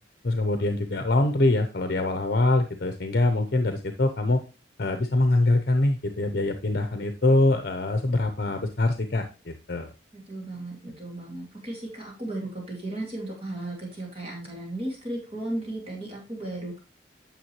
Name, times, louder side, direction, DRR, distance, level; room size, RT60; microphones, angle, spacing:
voice 1, 0.2-4.4 4.8-9.9, left 2 dB, 55° left, 7 dB, 0.8 m, -24 dB
voice 2, 10.1-16.8, right 1 dB, 30° right, -2 dB, 2.4 m, -35 dB
9.3 x 6.6 x 3.1 m, 0.29 s
head